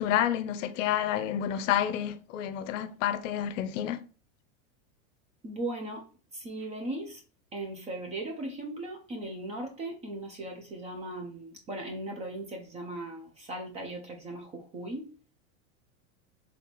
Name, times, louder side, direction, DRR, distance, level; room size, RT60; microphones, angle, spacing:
voice 1, 0.0-4.0, left 10 dB, 65° left, 0.6 m, -29 dB
voice 2, 5.4-6.0 6.3-7.2 7.5-15.1, right 1 dB, 15° right, 0.4 m, -38 dB
4.0 x 3.4 x 2.9 m
supercardioid pair, 140°, 41 cm